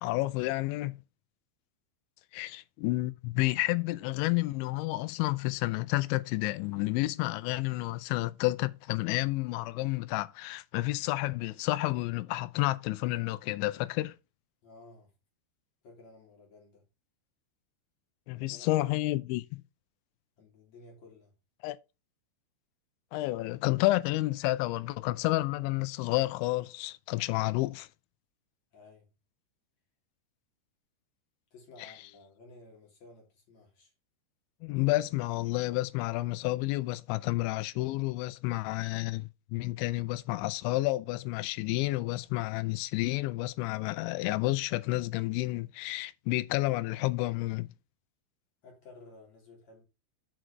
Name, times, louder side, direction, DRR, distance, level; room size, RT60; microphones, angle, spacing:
voice 1, 0.0-1.0 2.3-14.1 18.3-19.6 21.6-21.8 23.1-27.9 31.8-31.9 34.6-47.7, left 19 dB, 85° left, 2.8 m, -30 dB
voice 2, 14.6-15.1 15.8-16.8 18.3-18.8 20.4-21.4 28.7-29.1 31.5-33.9 48.6-49.8, left 3 dB, 45° left, 3.0 m, -54 dB
6.4 x 6.2 x 4.6 m
omnidirectional pair, 5.5 m